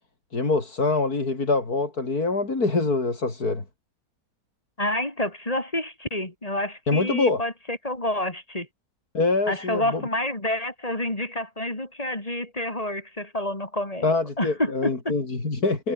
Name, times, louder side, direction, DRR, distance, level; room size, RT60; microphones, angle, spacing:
voice 1, 0.3-3.6 6.9-7.4 9.1-10.0 14.0-15.9, left 3 dB, 90° left, 4.7 m, -24 dB
voice 2, 4.8-8.7 9.5-14.1 14.4-15.1, left 1 dB, 25° left, 3.9 m, -28 dB
omnidirectional pair, 1.6 m